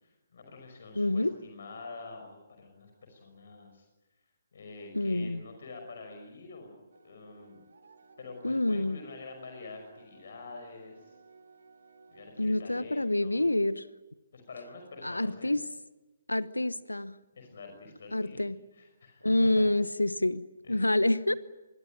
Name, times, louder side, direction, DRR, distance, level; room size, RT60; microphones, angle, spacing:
voice 1, 0.0-3.9 4.5-6.8 7.0-7.6 8.2-11.1 12.1-13.4 14.3-15.6 17.3-18.4 18.7-19.6 20.6-20.9, left 3 dB, 55° left, 4 dB, 5.6 m, -47 dB
voice 2, 0.9-1.3 4.9-5.4 8.4-9.0 12.4-13.9 15.0-15.6 16.3-17.1 18.1-18.6 19.2-21.3, left 1 dB, 85° left, 17 dB, 1.0 m, -27 dB
sound 1, 6.9-12.3, right 4 dB, 65° right, 3.4 m, -58 dB
25.5 x 21.5 x 9.1 m, 1.1 s
figure-of-eight pair, 135°, 0 cm